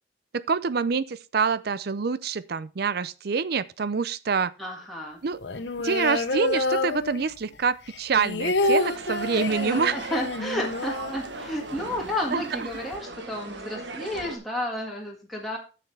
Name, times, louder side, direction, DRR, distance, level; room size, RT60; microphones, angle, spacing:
voice 1, 0.3-4.5 5.2-5.4 5.8-10.0 12.3-12.4, right 5 dB, 60° right, 0.5 m, -26 dB
voice 2, 4.6-5.2 9.3-15.6, left 1 dB, ahead, 1.8 m, -32 dB
sound 1, 5.4-7.5 7.9-11.8 12.1-12.2 12.5-13.0, left 2 dB, 75° left, 0.9 m, -28 dB
sound 2, 8.6-14.4, right 3 dB, 80° right, 1.3 m, -38 dB
11.0 x 6.7 x 3.4 m
head